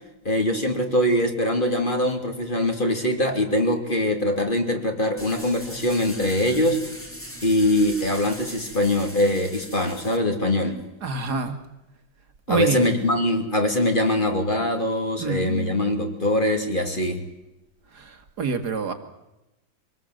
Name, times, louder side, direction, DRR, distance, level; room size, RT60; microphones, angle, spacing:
voice 1, 0.2-6.8 7.4-10.8 12.5-17.2, left 1 dB, 25° left, 4 dB, 2.9 m, -23 dB
sound 1, 5.2-10.2, equal, 5° left, 2.2 m, -40 dB
voice 2, 11.0-11.6 12.5-13.1 15.2-15.8 17.9-18.9, right 4 dB, 55° right, 8 dB, 2.3 m, -27 dB
25.0 x 19.0 x 7.8 m, 0.92 s
omnidirectional pair, 2.1 m